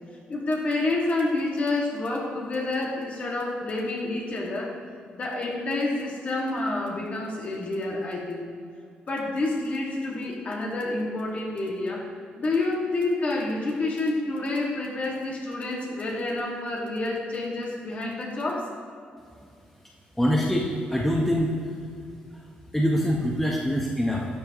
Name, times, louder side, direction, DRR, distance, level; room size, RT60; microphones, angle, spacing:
voice 1, 0.3-4.7 5.1-8.5 9.1-12.1 12.4-18.7, left 2 dB, 40° left, -2 dB, 1.9 m, -28 dB
voice 2, 20.2-21.6 22.7-24.3, equal, 5° left, -2 dB, 0.9 m, -24 dB
12.0 x 7.9 x 3.0 m, 2.3 s
cardioid pair, 105°, 4 cm